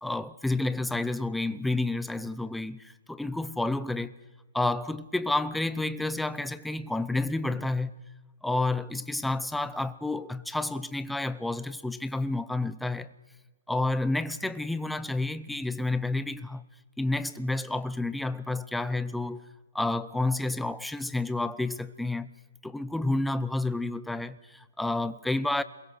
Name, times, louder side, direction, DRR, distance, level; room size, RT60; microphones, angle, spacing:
voice 1, 0.0-4.1 4.5-7.9 8.4-13.1 13.7-16.6 17.0-19.5 19.7-22.3 22.6-25.6, left 2 dB, ahead, 0.7 m, -30 dB
27.5 x 22.0 x 6.4 m
hypercardioid pair, 160°, 0 cm